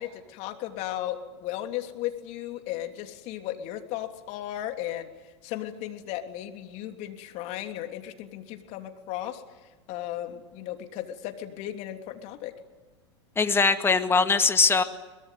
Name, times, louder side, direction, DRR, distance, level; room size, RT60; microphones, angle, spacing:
voice 1, 0.0-9.4 9.9-12.5, left 13 dB, 50° left, 5 dB, 3.2 m, -35 dB
voice 2, 13.4-14.8, left 4 dB, 15° left, 8 dB, 2.0 m, -21 dB
23.5 x 21.0 x 9.4 m, 1.2 s
hypercardioid pair, 100°, 15 cm